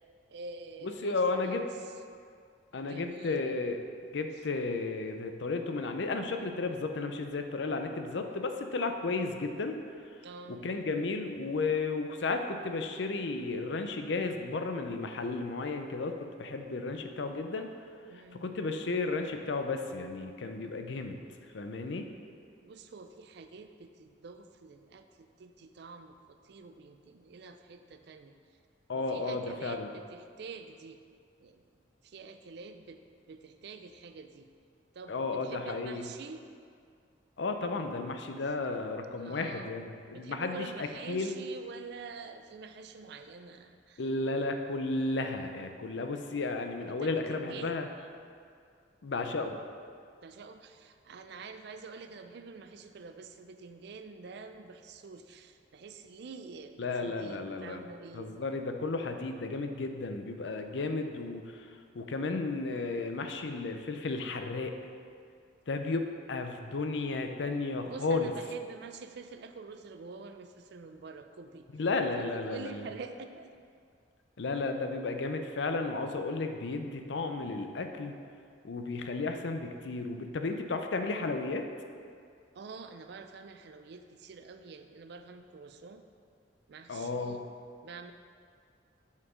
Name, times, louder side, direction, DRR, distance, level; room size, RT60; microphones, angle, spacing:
voice 1, 0.3-1.9 2.8-3.6 10.2-10.7 18.1-18.5 22.6-28.3 28.9-31.0 31.4-31.7 32.0-33.0 33.3-34.5 34.9-36.5 39.2-39.8 40.1-44.0 46.9-47.8 50.2-58.4 67.8-71.7 72.2-73.6 82.5-86.0 86.7-87.4 87.8-88.1, right 4 dB, 65° right, 8 dB, 0.4 m, -47 dB
voice 2, 0.8-1.7 2.7-3.8 4.1-9.8 10.5-17.7 18.4-21.2 21.5-22.1 28.9-29.9 35.1-36.0 37.4-41.4 44.0-47.9 49.0-49.6 56.8-57.9 58.1-64.8 65.7-68.3 71.7-72.9 74.4-78.1 78.6-81.7 86.9-87.4, left 3 dB, 75° left, 6 dB, 0.6 m, -33 dB
7.1 x 4.4 x 5.0 m, 2.2 s
head